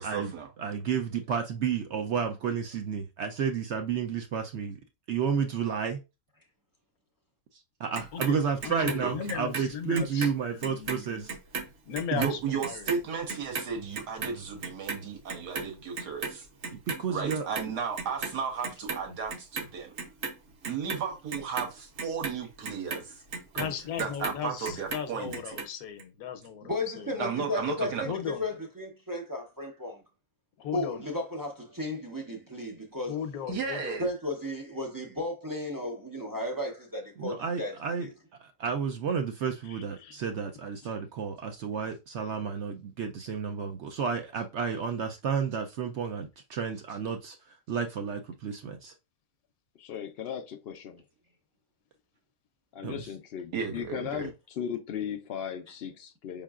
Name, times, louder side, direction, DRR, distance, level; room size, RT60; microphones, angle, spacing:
voice 1, 0.0-0.5 9.0-9.1 12.2-16.5 17.1-19.9 20.7-23.2 24.0-25.6 27.2-28.1 33.5-34.0 53.5-54.3, right 6 dB, 85° right, 1.7 m, -34 dB
voice 2, 0.6-4.8 5.1-6.0 7.8-11.4 12.1-12.3 16.7-17.5 23.5-23.7 37.2-38.1 38.4-48.9 52.8-53.1, right 6 dB, 70° right, 0.7 m, -31 dB
Clock, 7.9-10.3 10.6-17.0 17.3-18.4 18.6-19.6 20.0-24.4 24.7-25.7 26.0-26.1, right 4 dB, 55° right, 1.0 m, -36 dB
voice 3, 8.6-11.1 11.9-12.9 23.5-27.1 28.0-28.5 30.6-31.0 33.1-34.1 39.7-40.2, left 8 dB, 70° left, 1.1 m, -37 dB
voice 4, 26.6-30.0 30.7-33.2 34.0-37.7 38.0-38.1, left 1 dB, 35° right, 0.3 m, -34 dB
voice 5, 49.7-51.0 52.7-56.4, left 9 dB, 85° left, 0.5 m, -37 dB
5.4 x 3.7 x 2.3 m
omnidirectional pair, 1.7 m